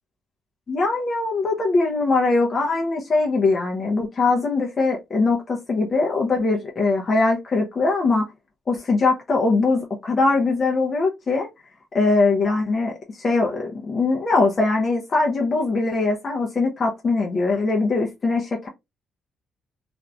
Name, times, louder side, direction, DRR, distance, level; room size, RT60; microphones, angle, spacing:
voice 1, 0.7-8.3 8.7-11.5 11.9-18.7, left 3 dB, 40° left, 0.7 m, -21 dB
3.0 x 2.5 x 2.2 m
cardioid pair, 90°, 0 cm